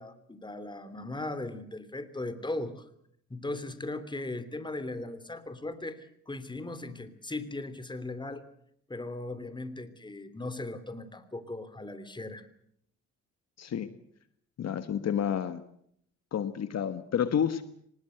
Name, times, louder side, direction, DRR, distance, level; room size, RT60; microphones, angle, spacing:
voice 1, 0.0-2.8 3.3-8.4 8.9-12.5, left 2 dB, 15° left, 12 dB, 3.1 m, -38 dB
voice 2, 13.6-13.9 14.6-15.6 16.3-17.6, left 8 dB, 60° left, 11 dB, 1.6 m, -30 dB
25.0 x 20.0 x 8.0 m, 0.70 s
cardioid pair, 90°, 30 cm